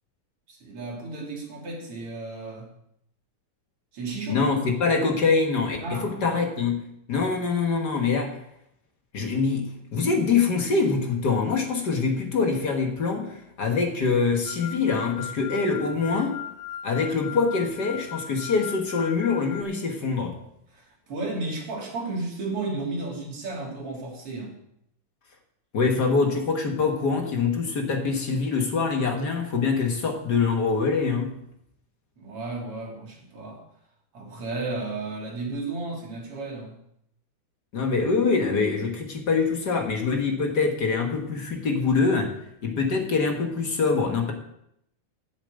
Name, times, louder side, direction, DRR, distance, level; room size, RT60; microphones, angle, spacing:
voice 1, 0.5-2.7 3.9-4.5 5.8-6.2 20.7-24.6 32.2-33.6 34.1-36.8, right 3 dB, 45° right, -2 dB, 3.6 m, -33 dB
voice 2, 4.3-6.8 7.1-8.4 9.1-16.4 16.8-20.4 25.7-31.4 37.7-42.3 42.6-44.3, left 4 dB, 45° left, 3 dB, 1.4 m, -24 dB
sound 1, 14.5-19.6, left 10 dB, 85° left, 1.2 m, -38 dB
8.9 x 7.3 x 8.0 m, 0.76 s
omnidirectional pair, 3.5 m